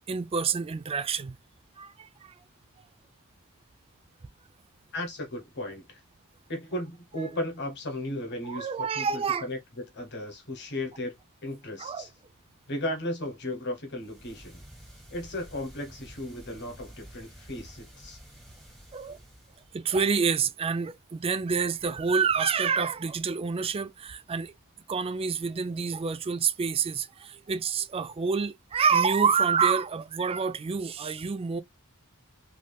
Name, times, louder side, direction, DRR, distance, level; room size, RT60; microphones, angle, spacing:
voice 1, 0.0-1.4 1.8-2.4 8.4-9.5 11.8-12.1 18.9-19.2 19.7-24.5 24.9-31.6, right 5 dB, 25° right, 0.3 m, -27 dB
voice 2, 4.9-6.0 6.5-11.1 11.4-12.1 12.7-14.6 15.1-18.2, left 1 dB, 50° left, 1.1 m, -35 dB
sound 1, 14.0-19.9, right 1 dB, ahead, 1.2 m, -50 dB
3.5 x 2.8 x 2.2 m
head